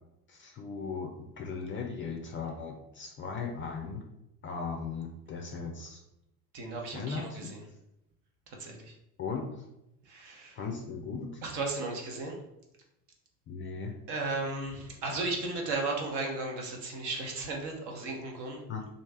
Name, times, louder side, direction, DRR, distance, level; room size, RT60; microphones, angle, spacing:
voice 1, 0.3-1.1 1.4-4.0 4.4-6.0 6.9-7.4 9.2-9.6 10.5-11.4 13.5-13.9 18.7-18.9, left 5 dB, 25° left, 2 dB, 0.4 m, -37 dB
voice 2, 6.5-7.6 8.5-8.9 10.0-10.6 11.4-12.4 14.1-18.6, right 3 dB, 50° right, 1 dB, 1.1 m, -35 dB
3.2 x 2.6 x 3.3 m, 0.85 s
hypercardioid pair, 75°, 49 cm